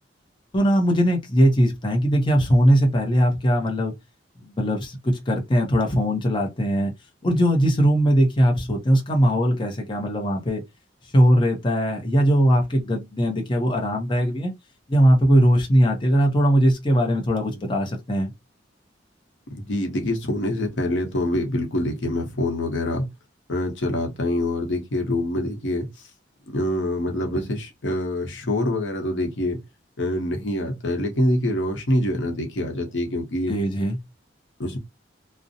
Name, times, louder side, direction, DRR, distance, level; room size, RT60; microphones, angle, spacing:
voice 1, 0.5-3.9 4.4-6.9 7.2-10.6 11.1-14.5 14.9-18.3 33.5-34.0, equal, 25° left, 0.6 m, -20 dB
voice 2, 19.5-23.1 23.5-25.9 26.5-29.6 30.0-33.5 34.6-34.8, left 1 dB, 85° left, 0.8 m, -25 dB
2.5 x 2.0 x 2.7 m
head